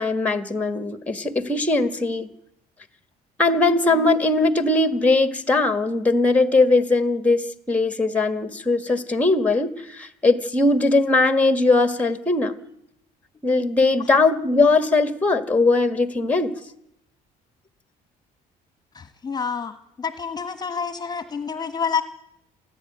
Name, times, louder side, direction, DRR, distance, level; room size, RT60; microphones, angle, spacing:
voice 1, 0.0-2.3 3.4-12.5 13.4-16.5, left 3 dB, 10° left, 10 dB, 1.6 m, -20 dB
voice 2, 18.9-22.0, left 6 dB, 25° left, 9 dB, 1.5 m, -28 dB
28.5 x 10.5 x 9.3 m, 0.79 s
cardioid pair, 110°, 17 cm